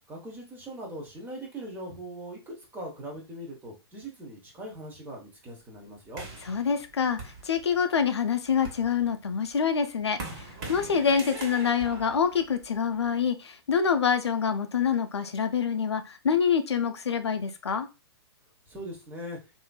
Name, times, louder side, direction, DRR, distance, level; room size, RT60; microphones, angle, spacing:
voice 1, 0.1-6.2 18.7-19.4, right 1 dB, 15° right, -1 dB, 0.9 m, -40 dB
sound 1, 6.2-8.0 8.5-13.1, right 3 dB, 50° right, 1.2 m, -42 dB
voice 2, 6.5-7.2 7.4-17.9, left 6 dB, 85° left, 8 dB, 0.4 m, -26 dB
3.0 x 2.6 x 2.2 m, 0.28 s
hypercardioid pair, 125°, 14 cm